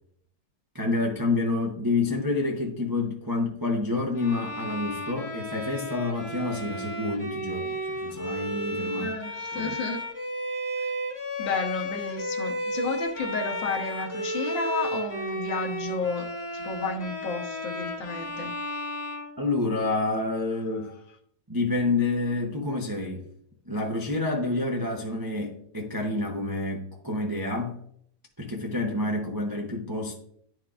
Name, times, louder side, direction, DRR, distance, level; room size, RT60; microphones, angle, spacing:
voice 1, 0.7-9.1 9.5-9.7 19.4-20.9 21.5-23.3 23.7-27.8 28.4-30.2, left 2 dB, 25° right, 0 dB, 0.4 m, -28 dB
Bowed string instrument, 4.2-20.0, equal, 30° left, 0.5 m, -33 dB
voice 2, 9.0-10.0 11.4-18.6 20.7-20.8, left 3 dB, 75° left, 2 dB, 1.8 m, -32 dB
11.0 x 4.7 x 2.5 m, 0.65 s
omnidirectional pair, 2.1 m